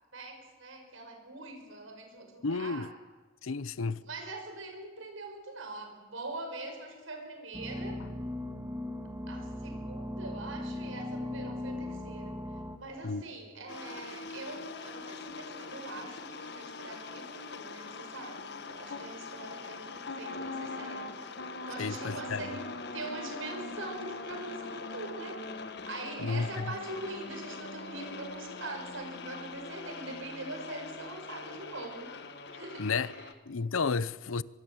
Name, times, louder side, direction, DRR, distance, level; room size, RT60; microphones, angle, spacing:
voice 1, 0.1-2.9 3.7-8.0 9.3-12.4 12.8-21.1 21.6-25.4 25.9-32.2 32.5-33.3, right 2 dB, 80° right, 5.5 m, -43 dB
voice 2, 2.4-2.9 3.4-4.0 13.0-13.2 21.8-22.4 26.2-26.5 32.8-33.1 33.5-34.4, left 4 dB, 90° left, 0.7 m, -31 dB
sound 1, 7.5-12.8, left 1 dB, 15° right, 1.6 m, -38 dB
sound 2, 13.7-33.3, left 3 dB, 55° left, 1.5 m, -42 dB
23.0 x 23.0 x 7.7 m
head